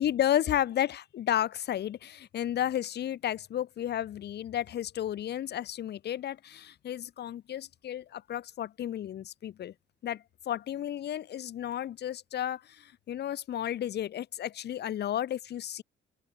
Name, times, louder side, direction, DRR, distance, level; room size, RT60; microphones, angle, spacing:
voice 1, 0.0-9.7 10.0-15.8, left 11 dB, 55° left, 0.7 m, -32 dB
open air
cardioid pair, 90°, 20 cm